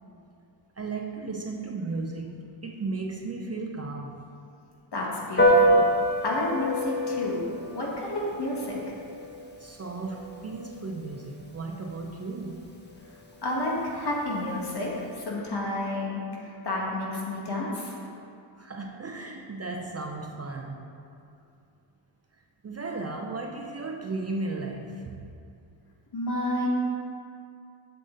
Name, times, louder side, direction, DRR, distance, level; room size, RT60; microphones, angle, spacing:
voice 1, 0.8-2.4 2.6-4.2 9.6-12.7 18.6-20.9 22.6-25.3, right 3 dB, 30° right, 2 dB, 0.5 m, -35 dB
voice 2, 4.9-5.8 6.2-7.4 7.7-8.9 13.4-14.9 15.1-18.0 26.1-26.7, left 1 dB, 50° left, -3 dB, 1.8 m, -30 dB
Piano, 5.4-15.1, equal, 20° left, 1.0 m, -28 dB
7.6 x 6.7 x 3.9 m, 2.5 s
cardioid pair, 95°, 50 cm